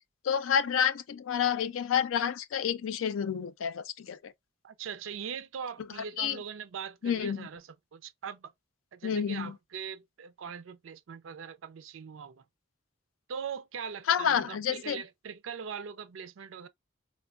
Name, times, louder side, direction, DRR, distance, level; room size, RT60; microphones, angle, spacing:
voice 1, 0.2-4.3 6.2-6.4 7.0-7.5 9.0-9.5 14.1-15.0, left 8 dB, 80° left, 0.4 m, -29 dB
voice 2, 4.6-8.5 8.9-12.4 13.3-16.7, right 7 dB, 75° right, 0.4 m, -41 dB
4.3 x 2.1 x 2.3 m
head